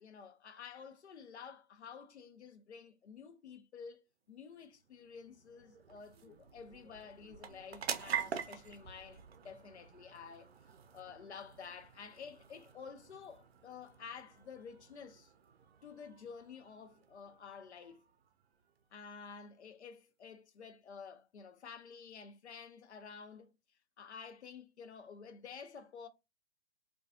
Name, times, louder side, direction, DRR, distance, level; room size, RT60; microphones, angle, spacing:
voice 1, 0.0-10.5 10.9-15.3 15.8-18.0 18.9-23.5 24.0-26.1, left 6 dB, 75° left, 0.5 m, -51 dB
sound 1, 4.4-19.3, right 7 dB, 60° right, 0.5 m, -47 dB
2.3 x 2.3 x 2.4 m
figure-of-eight pair, 130°, 34 cm